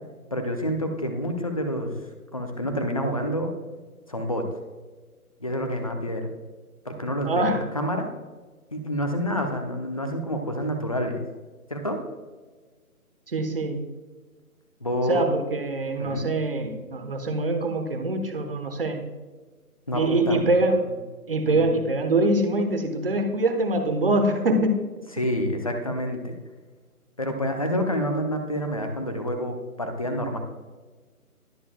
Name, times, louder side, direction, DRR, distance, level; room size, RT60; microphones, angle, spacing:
voice 1, 0.3-1.9 2.3-3.5 4.1-4.5 5.4-6.3 6.8-7.4 7.7-8.1 8.7-11.2 11.7-12.0 14.8-15.2 16.0-16.3 19.9-20.5 21.4-21.7 25.1-26.3 27.2-30.4, equal, 25° left, 5 dB, 0.8 m, -28 dB
voice 2, 7.2-7.6 13.3-13.8 15.1-19.0 19.9-20.8 21.3-24.8, right 2 dB, 40° right, 5 dB, 1.3 m, -24 dB
21.0 x 7.0 x 2.3 m, 1.3 s
figure-of-eight pair, 155°, 45 cm